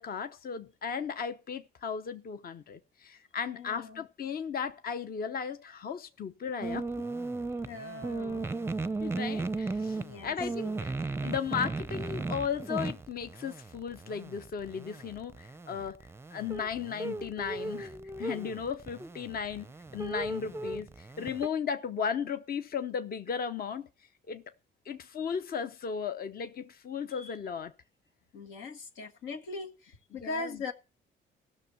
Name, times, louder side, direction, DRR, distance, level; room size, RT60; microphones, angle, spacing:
voice 1, 0.0-6.9 9.0-17.9 18.2-19.7 19.9-23.9 24.3-24.5 24.9-27.7 30.2-30.5, left 7 dB, 50° left, 0.8 m, -36 dB
voice 2, 3.5-4.0 7.6-8.5 10.0-10.4 27.1-27.3 28.3-30.7, left 3 dB, 90° left, 1.7 m, -40 dB
sound 1, 6.6-21.5, right 3 dB, 10° right, 0.5 m, -36 dB
15.5 x 6.4 x 7.0 m
cardioid pair, 90°, 20 cm